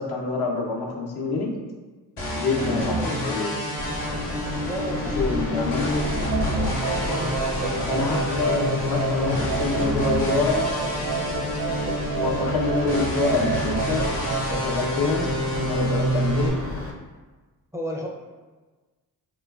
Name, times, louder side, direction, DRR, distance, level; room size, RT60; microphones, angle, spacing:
voice 1, 0.0-1.6 2.4-3.6 5.2-6.1 7.8-10.8 11.5-11.6 12.1-14.0 14.4-15.3 15.6-16.6, left 3 dB, 65° left, -1 dB, 0.8 m, -26 dB
sound 1, 2.2-16.5, equal, 85° left, 1.0 m, -28 dB
voice 2, 2.7-3.2 4.6-5.9 7.1-7.5 17.7-18.1, equal, 5° right, -2 dB, 0.4 m, -34 dB
sound 2, 3.8-16.9, left 2 dB, 30° left, 0.7 m, -32 dB
sound 3, 6.3-14.5, right 6 dB, 75° right, 0.7 m, -30 dB
3.7 x 3.0 x 2.3 m, 1.3 s
supercardioid pair, 55°, 42 cm